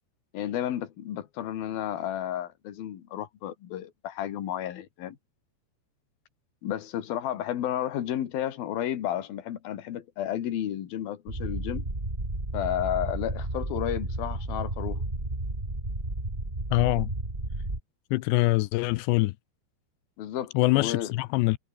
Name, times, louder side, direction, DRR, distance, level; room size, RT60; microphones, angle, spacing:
voice 1, 0.3-5.2 6.6-11.9 12.5-15.0 20.2-21.2, left 11 dB, 60° left, 3.6 m, -32 dB
sound 1, 11.3-17.8, right 2 dB, 10° right, 4.1 m, -32 dB
voice 2, 16.7-17.1 18.1-19.3 20.5-21.6, left 20 dB, 85° left, 2.8 m, -24 dB
omnidirectional pair, 5.1 m